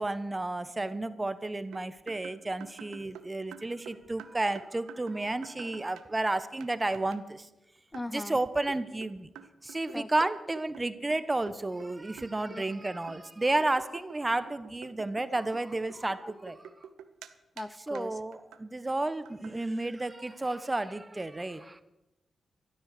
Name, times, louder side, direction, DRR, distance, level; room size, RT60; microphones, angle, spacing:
voice 1, 0.0-7.5 8.1-9.3 9.6-16.6 17.9-21.8, right 2 dB, 25° right, 13 dB, 1.1 m, -32 dB
sound 1, 1.7-6.3 6.6-6.7 6.9-7.2 7.9-8.1 8.7-11.9 12.2-12.8 13.1-17.3 17.6-17.7 17.9-18.1 18.3-18.6 18.9-19.0 19.2-19.5, right 9 dB, 90° right, 0.8 m, -49 dB
voice 2, 7.9-8.4 9.9-10.1 12.5-12.6 16.2-16.3 17.6-18.2, left 2 dB, 20° left, 14 dB, 0.7 m, -39 dB
13.0 x 12.5 x 6.8 m, 0.96 s
supercardioid pair, 50°, 0 cm